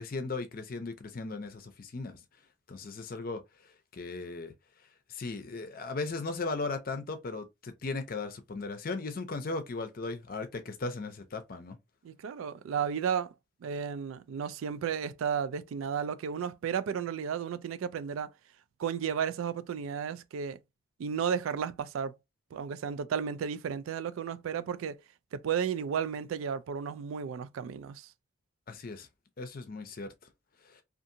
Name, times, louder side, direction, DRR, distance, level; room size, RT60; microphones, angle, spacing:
voice 1, 0.0-2.2 2.7-3.4 3.9-4.5 5.1-11.8 28.7-29.1 29.4-30.1 30.7-30.8, left 3 dB, 45° left, 0.5 m, -37 dB
voice 2, 12.0-13.3 13.6-18.3 18.8-20.6 21.0-22.2 22.5-25.0 25.3-28.1, right 7 dB, 85° right, 0.3 m, -33 dB
2.7 x 2.4 x 2.6 m
head